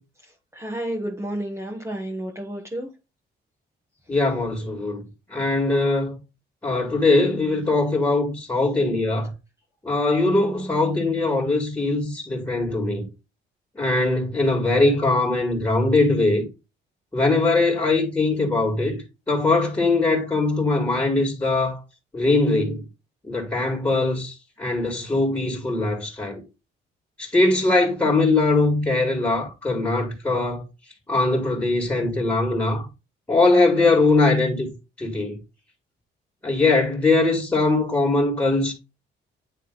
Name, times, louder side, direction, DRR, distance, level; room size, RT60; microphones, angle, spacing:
voice 1, 0.5-2.9, right 1 dB, 15° right, 1.4 m, -30 dB
voice 2, 4.1-5.0 5.3-6.2 6.6-9.3 9.8-13.1 13.8-16.5 17.1-19.0 19.3-21.8 22.1-22.8 23.2-24.3 24.6-26.4 27.2-30.6 31.1-32.8 33.3-34.7 35.0-35.4 36.4-38.7, left 2 dB, 10° left, 2.3 m, -21 dB
9.7 x 3.2 x 3.9 m
cardioid pair, 90°, 20 cm